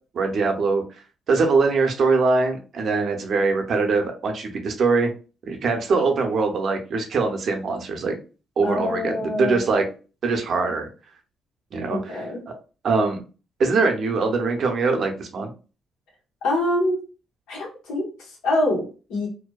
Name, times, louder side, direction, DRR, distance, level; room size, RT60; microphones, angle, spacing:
voice 1, 0.1-0.8 1.3-5.1 5.5-8.2 8.6-9.9 10.2-10.9 11.7-12.2 12.5-12.6 12.8-13.2 13.6-15.5, right 4 dB, 55° right, 4 dB, 0.6 m, -22 dB
voice 2, 8.6-9.7 11.9-12.4 16.4-17.0 17.5-19.3, left 1 dB, 90° left, -2 dB, 1.1 m, -25 dB
2.6 x 2.1 x 2.2 m, 0.34 s
cardioid pair, 90°, 0 cm